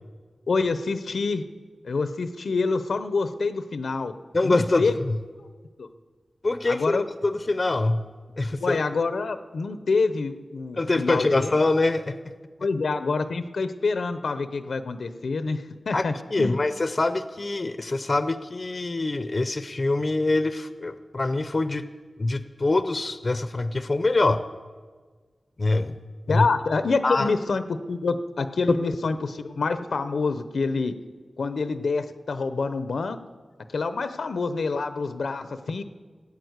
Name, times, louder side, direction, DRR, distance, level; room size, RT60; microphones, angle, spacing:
voice 1, 0.5-1.4 1.8-4.1 4.4-5.0 5.8-5.9 6.7-7.0 8.6-11.5 12.6-16.6 26.3-30.9 31.4-33.2 33.7-35.8, left 4 dB, 80° left, 11 dB, 0.7 m, -27 dB
voice 2, 4.3-5.2 6.4-8.0 8.4-8.8 10.8-12.3 15.9-21.8 22.2-24.4 25.6-26.0 26.3-26.5 27.0-27.3 28.7-28.8, left 2 dB, 40° left, 12 dB, 0.6 m, -24 dB
15.5 x 8.6 x 8.0 m, 1.5 s
wide cardioid pair, 90°, 0 cm